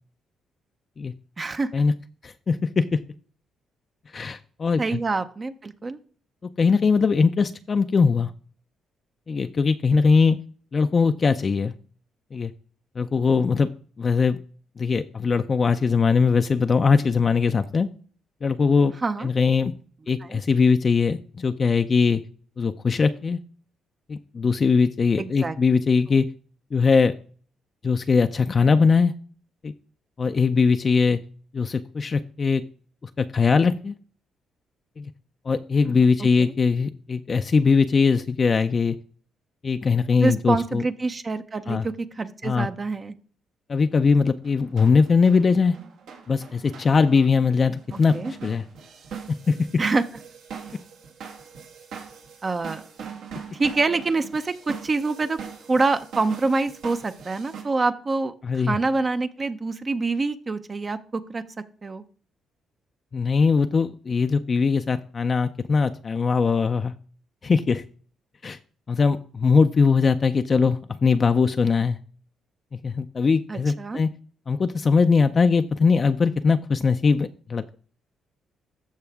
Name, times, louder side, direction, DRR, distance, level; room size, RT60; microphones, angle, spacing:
voice 1, 1.4-1.7 4.8-6.0 19.0-19.3 20.2-20.4 25.2-25.5 35.9-36.0 36.4-36.5 40.2-43.1 48.1-48.3 49.8-50.0 52.4-52.8 53.5-55.4 55.7-61.4 61.8-62.0 73.5-74.0, right 3 dB, 30° right, 9 dB, 0.6 m, -26 dB
voice 2, 2.2-3.0 4.1-5.0 6.6-8.3 9.3-10.4 10.7-11.7 12.3-12.5 13.0-13.7 14.0-14.4 14.8-17.9 18.4-18.9 19.2-19.7 20.1-22.2 22.6-23.4 24.1-26.2 26.7-27.1 27.8-29.1 29.6-29.7 30.2-31.2 31.5-32.6 33.2-33.9 35.0-35.1 35.5-39.0 39.6-40.8 41.7-41.9 42.4-42.7 43.7-45.8 46.3-48.1 48.4-48.6 49.3-49.6 58.4-58.8 63.1-66.9 67.4-67.8 68.4-68.6 68.9-72.0 72.7-74.1 74.5-77.8, left 5 dB, 40° left, 8 dB, 0.4 m, -21 dB
sound 1, 44.4-57.6, right 6 dB, 80° right, 2.0 m, -41 dB
14.0 x 4.7 x 3.5 m, 0.43 s
cardioid pair, 90°, 0 cm